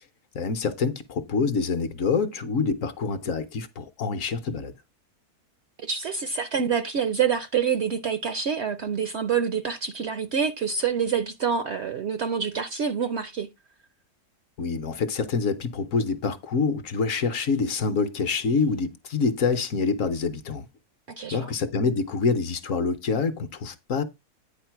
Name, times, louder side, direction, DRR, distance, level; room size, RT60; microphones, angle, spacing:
voice 1, 0.3-4.7 14.6-20.7 21.3-24.0, left 4 dB, 60° left, 1.1 m, -26 dB
voice 2, 5.8-13.5 21.1-21.5, right 7 dB, 65° right, 0.7 m, -27 dB
9.5 x 4.3 x 4.5 m
omnidirectional pair, 1.6 m